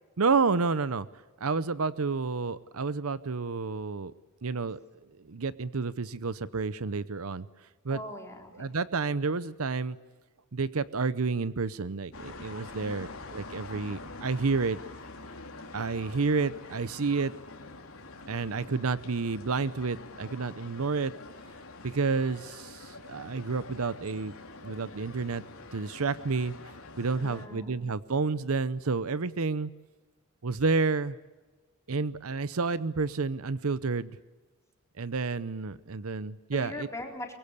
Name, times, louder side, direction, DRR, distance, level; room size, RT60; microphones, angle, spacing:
voice 1, 0.2-1.1 1.4-4.1 4.4-4.8 5.2-7.5 7.8-8.0 8.5-10.0 10.5-14.8 15.7-17.3 18.3-21.1 21.8-24.3 24.6-25.4 25.7-26.5 27.0-29.7 30.4-31.2 31.9-34.2 35.0-36.9, right 4 dB, 70° right, 16 dB, 0.8 m, -30 dB
voice 2, 7.9-8.7 12.7-13.5 27.2-27.9 36.5-37.3, left 1 dB, 15° left, 1 dB, 4.2 m, -42 dB
sound 1, 12.1-27.5, left 3 dB, 70° left, 3.3 m, -46 dB
23.5 x 22.5 x 8.4 m, 1.2 s
head